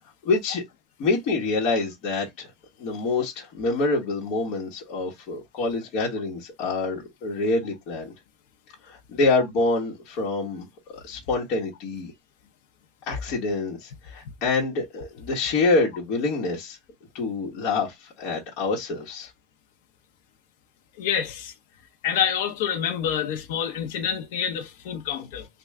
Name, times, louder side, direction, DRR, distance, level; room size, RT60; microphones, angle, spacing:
voice 1, 0.2-0.6 1.0-2.5 2.8-8.1 8.8-10.7 11.0-12.1 13.1-16.8 17.1-19.3, left 3 dB, 45° left, 1.1 m, -26 dB
voice 2, 21.0-21.5 22.0-25.5, left 8 dB, 70° left, 0.7 m, -27 dB
3.3 x 2.3 x 3.5 m
supercardioid pair, 165°, 0 cm